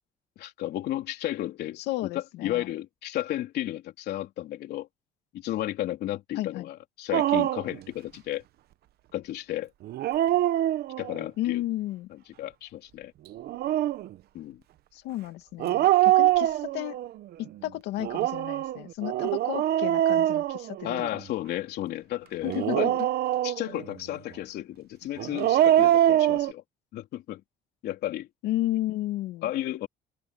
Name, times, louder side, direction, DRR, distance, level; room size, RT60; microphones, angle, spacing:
voice 1, 0.4-1.8 2.1-4.9 5.3-8.4 9.1-9.7 11.0-11.6 12.1-13.1 14.3-14.6 20.8-23.0 23.4-26.6 26.9-27.4 27.8-28.3 29.4-29.9, left 14 dB, 75° left, 3.8 m, -33 dB
voice 2, 1.8-2.7 6.4-6.7 11.4-12.1 14.9-17.0 17.4-21.2 22.4-22.9 28.4-29.5, left 15 dB, 90° left, 2.4 m, -33 dB
Dog, 7.1-7.8 9.8-11.2 13.3-14.1 15.6-17.1 18.0-21.2 22.4-23.8 25.2-26.5, right 13 dB, 70° right, 1.0 m, -24 dB
open air
cardioid pair, 110°, 17 cm